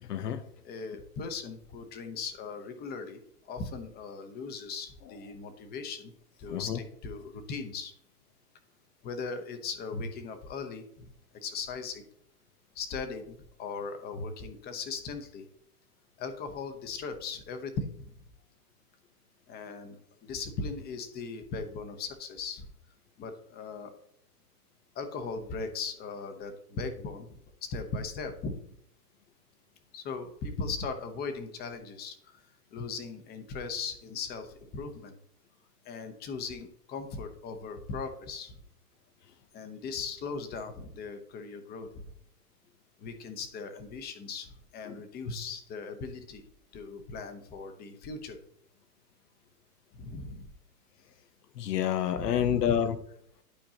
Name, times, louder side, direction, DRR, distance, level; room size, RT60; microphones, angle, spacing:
voice 1, 0.0-0.4 6.5-6.8 44.9-45.0 51.6-53.0, left 9 dB, 85° left, 11 dB, 0.9 m, -28 dB
voice 2, 0.6-3.2 3.5-6.1 6.4-7.9 9.0-11.1 11.4-12.0 12.8-15.4 16.2-18.1 19.5-22.7 23.2-23.9 25.0-27.3 27.7-28.5 29.9-32.1 32.7-35.2 35.9-38.5 39.5-42.1 43.0-46.4 46.7-48.4 49.9-50.5 52.2-52.8, left 4 dB, 20° left, 7 dB, 0.9 m, -38 dB
11.5 x 4.5 x 2.9 m, 0.69 s
hypercardioid pair, 135°, 46 cm